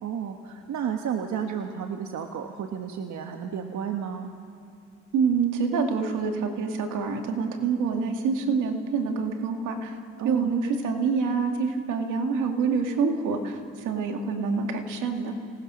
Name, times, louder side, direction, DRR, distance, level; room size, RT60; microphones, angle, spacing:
voice 1, 0.0-4.3 10.2-10.5, right 7 dB, 70° right, 4 dB, 1.4 m, -32 dB
voice 2, 5.1-9.9 10.2-15.4, right 5 dB, 90° right, 4 dB, 2.3 m, -26 dB
28.0 x 19.0 x 6.4 m, 2.3 s
cardioid pair, 90°, 30 cm